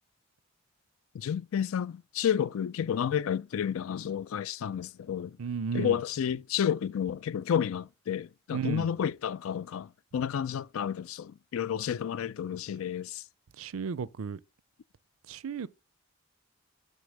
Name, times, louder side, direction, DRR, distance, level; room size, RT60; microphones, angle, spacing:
voice 1, 1.1-5.4 5.7-13.2, left 8 dB, 75° left, 0.3 m, -31 dB
voice 2, 5.4-6.0 8.5-8.9 13.6-14.4 15.3-15.7, right 6 dB, 75° right, 0.5 m, -33 dB
9.3 x 3.7 x 6.5 m
head